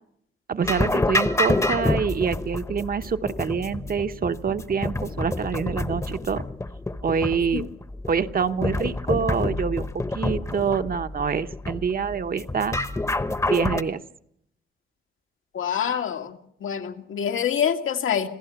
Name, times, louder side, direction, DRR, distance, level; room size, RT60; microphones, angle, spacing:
voice 1, 0.5-6.4 7.0-7.7 8.1-12.8 13.4-14.0, right 6 dB, 45° right, 1.0 m, -26 dB
sound 1, 0.6-13.8, left 2 dB, 15° left, 0.9 m, -28 dB
voice 2, 15.5-18.3, left 8 dB, 80° left, 2.0 m, -26 dB
26.5 x 16.0 x 7.0 m
wide cardioid pair, 120°, 21 cm